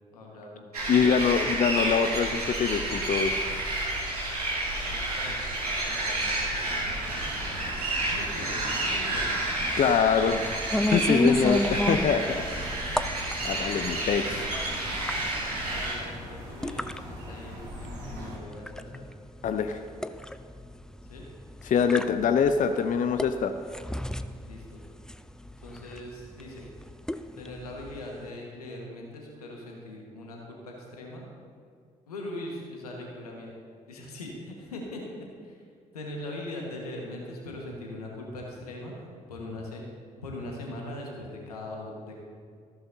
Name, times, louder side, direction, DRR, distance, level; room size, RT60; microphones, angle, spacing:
voice 1, 0.1-1.0 4.5-5.4 5.7-7.5 8.0-9.4 11.2-11.3 15.7-19.1 21.1-21.2 24.4-24.8 25.6-26.7 27.4-31.2 32.1-33.5 33.9-35.6 35.9-38.9 39.3-39.8 40.2-42.1, left 1 dB, 85° left, -1 dB, 1.5 m, -41 dB
sound 1, 0.7-15.9, right 2 dB, 85° right, 1.7 m, -30 dB
voice 2, 0.9-3.4 9.8-10.5 10.9-12.7 13.4-14.5 19.4-19.8 21.6-23.5, left 6 dB, 45° left, 8 dB, 0.6 m, -24 dB
sound 2, 6.6-18.4, right 1 dB, 60° right, 2.9 m, -43 dB
sound 3, 10.7-28.3, left 1 dB, 5° left, 0.5 m, -33 dB
14.5 x 12.5 x 2.7 m, 2.2 s
figure-of-eight pair, 40°, 19 cm